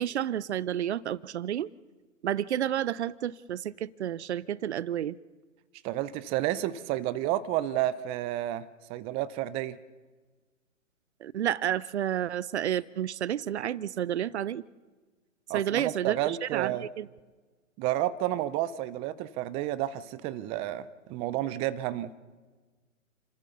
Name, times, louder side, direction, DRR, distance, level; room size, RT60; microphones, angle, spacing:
voice 1, 0.0-1.7 2.2-5.2 11.2-14.6 15.5-17.1, right 10 dB, 55° right, 22 dB, 0.8 m, -30 dB
voice 2, 5.8-9.8 15.5-16.9 17.8-22.1, right 13 dB, 15° right, 16 dB, 0.6 m, -31 dB
30.0 x 14.0 x 6.9 m, 1.4 s
hypercardioid pair, 130°, 39 cm